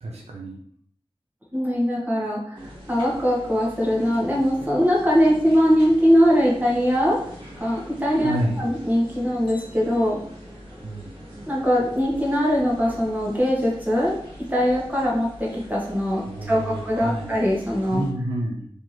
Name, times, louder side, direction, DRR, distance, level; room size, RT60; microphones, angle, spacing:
voice 1, 0.0-0.6 8.2-8.7 10.8-11.1 16.2-17.3 17.9-18.7, right 1 dB, 90° right, -1 dB, 0.7 m, -29 dB
voice 2, 1.5-7.2 7.6-10.2 11.5-14.1 14.5-18.0, equal, 15° right, -4 dB, 1.3 m, -21 dB
sound 1, 2.5-18.1, equal, 50° right, 1.5 m, -43 dB
3.4 x 2.7 x 3.0 m, 0.63 s
wide cardioid pair, 40°, 10 cm